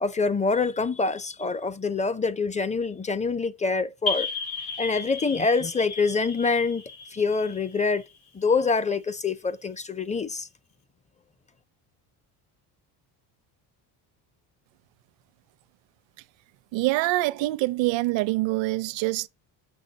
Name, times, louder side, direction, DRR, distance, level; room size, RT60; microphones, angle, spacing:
voice 1, 0.0-4.3 4.8-6.8 7.1-8.0 8.3-10.5, left 4 dB, 15° left, 0.4 m, -25 dB
sound 1, 4.1-8.5, left 4 dB, 75° left, 2.4 m, -34 dB
voice 2, 16.7-19.3, right 20 dB, 70° right, 0.6 m, -25 dB
7.1 x 5.7 x 3.9 m
supercardioid pair, 90°, 47 cm